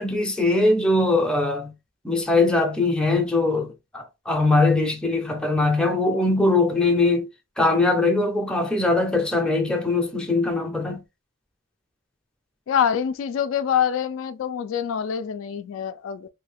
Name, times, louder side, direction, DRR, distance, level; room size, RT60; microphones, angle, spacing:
voice 1, 0.0-1.7 2.0-7.3 7.6-11.0, left 2 dB, 5° left, 0.5 m, -21 dB
voice 2, 12.7-16.3, left 8 dB, 70° left, 0.3 m, -25 dB
2.7 x 2.3 x 3.3 m
head